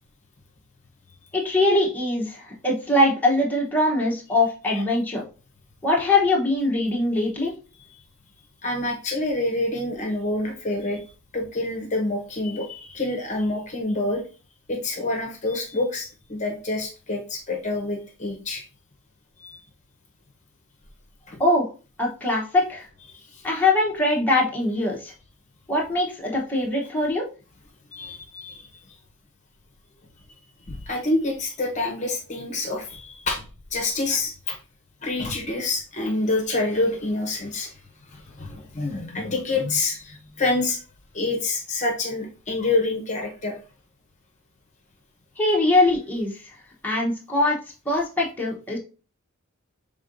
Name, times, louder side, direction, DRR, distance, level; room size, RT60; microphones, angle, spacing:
voice 1, 1.3-5.2 5.8-7.5 21.4-21.7 22.0-22.9 23.4-25.1 25.7-27.2 45.4-46.5 46.8-47.6 47.9-48.8, left 2 dB, 10° left, -4 dB, 0.9 m, -22 dB
voice 2, 8.6-11.0 11.3-14.2 14.7-18.6 19.4-19.6 21.3-21.4 23.1-23.4 27.9-28.7 30.7-33.4 33.7-34.6 35.0-37.7 38.1-40.8 41.1-43.6, left 2 dB, 35° left, 2 dB, 0.8 m, -27 dB
5.2 x 3.7 x 2.6 m, 0.34 s
head